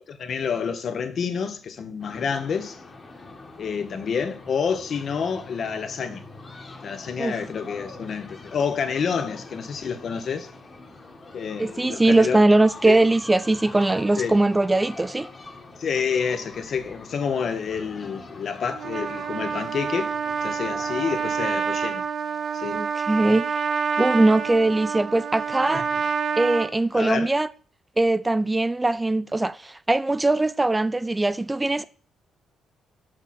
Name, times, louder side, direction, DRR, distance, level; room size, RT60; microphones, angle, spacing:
voice 1, 0.1-2.8 3.6-6.2 6.8-10.5 11.3-12.4 12.9-13.0 14.2-14.4 15.8-20.1 20.4-22.1 22.5-22.8 25.7-25.8 26.9-27.3, left 6 dB, 55° left, 0.9 m, -28 dB
sound 1, 2.0-21.6, left 3 dB, 35° left, 1.5 m, -44 dB
voice 2, 11.6-15.3 22.7-23.6 24.0-25.8 26.4-27.5 28.0-31.8, right 2 dB, 15° right, 0.3 m, -21 dB
Trumpet, 18.7-26.7, right 6 dB, 50° right, 0.7 m, -27 dB
6.4 x 6.2 x 4.1 m
cardioid pair, 90°, 0 cm